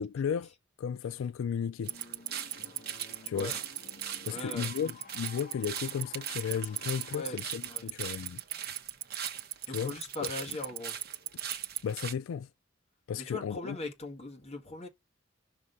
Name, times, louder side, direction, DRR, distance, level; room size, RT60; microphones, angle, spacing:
voice 1, 0.0-1.9 3.2-3.5 4.2-8.4 9.7-9.9 10.2-10.3 11.8-12.5 13.1-13.8, left 7 dB, 85° left, 0.3 m, -34 dB
sound 1, 1.8-12.1, right 8 dB, 50° right, 0.9 m, -42 dB
sound 2, 1.9-7.4, left 3 dB, 50° left, 1.2 m, -53 dB
Tick-tock, 1.9-11.8, right 17 dB, 85° right, 0.3 m, -33 dB
voice 2, 4.3-4.7 7.1-7.9 9.7-11.0 13.2-14.9, left 2 dB, 30° left, 1.5 m, -40 dB
6.1 x 3.1 x 5.4 m
head